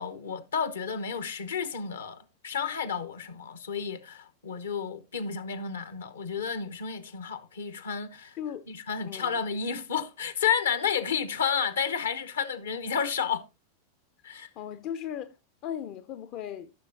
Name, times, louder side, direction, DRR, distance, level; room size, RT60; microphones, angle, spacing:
voice 1, 0.0-8.4 8.7-13.4 14.2-14.5, left 7 dB, 65° left, 1.0 m, -31 dB
voice 2, 9.0-9.4 14.6-15.3 15.6-16.7, left 9 dB, 40° left, 0.5 m, -37 dB
14.5 x 6.7 x 2.6 m
figure-of-eight pair, 90°, 0 cm